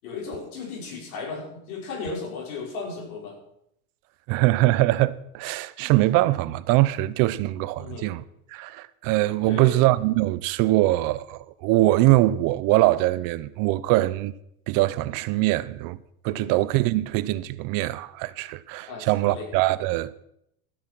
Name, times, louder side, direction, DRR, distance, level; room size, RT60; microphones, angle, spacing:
voice 1, 0.0-3.4 7.8-8.1 9.4-9.9 16.3-16.5 18.8-19.5, left 4 dB, 80° left, 5.5 m, -35 dB
voice 2, 4.3-8.2 8.5-14.3 14.7-16.0 16.2-20.2, right 17 dB, 50° right, 0.7 m, -22 dB
13.0 x 8.3 x 6.0 m
supercardioid pair, 120°, 43 cm